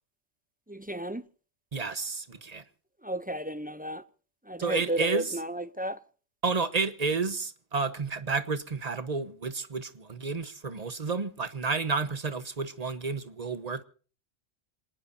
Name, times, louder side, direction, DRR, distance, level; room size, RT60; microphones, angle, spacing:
voice 1, 0.7-1.2 3.0-4.0 4.5-6.0, right 1 dB, 10° right, 0.4 m, -33 dB
voice 2, 1.7-2.6 4.6-5.3 6.4-13.8, right 4 dB, 35° right, 1.2 m, -31 dB
27.0 x 19.0 x 2.7 m
omnidirectional pair, 1.3 m